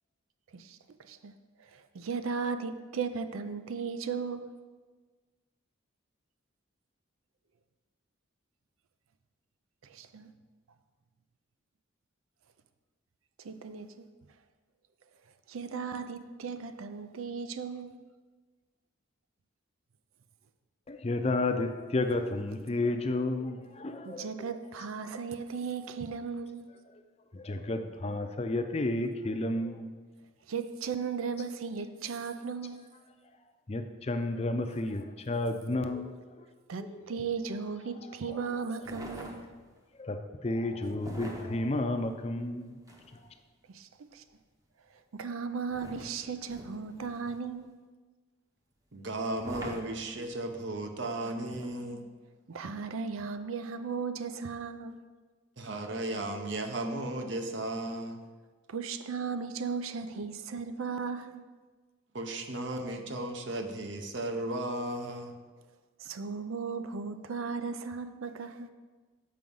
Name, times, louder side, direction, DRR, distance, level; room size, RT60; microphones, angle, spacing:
voice 1, 0.5-1.3 1.6-4.5 9.8-10.3 13.4-14.1 15.5-18.0 24.1-26.7 30.5-32.8 36.7-39.5 43.7-44.2 45.1-47.7 52.5-55.0 58.7-61.4 66.0-68.7, right 5 dB, 85° right, 10 dB, 0.5 m, -36 dB
voice 2, 20.9-24.5 26.9-27.0 27.3-29.9 33.7-36.5 36.8-37.1 38.1-38.5 39.9-42.8 43.1-43.3, left 2 dB, 30° left, 7 dB, 0.5 m, -32 dB
sound 1, 38.8-39.8 41.0-43.3 45.7-47.6 49.4-50.6 51.5-51.7, equal, 15° right, 0.8 m, -46 dB
voice 3, 48.9-52.1 55.6-58.2 62.1-65.4, right 1 dB, 60° right, 5 dB, 0.8 m, -35 dB
7.6 x 4.8 x 5.4 m, 1.4 s
head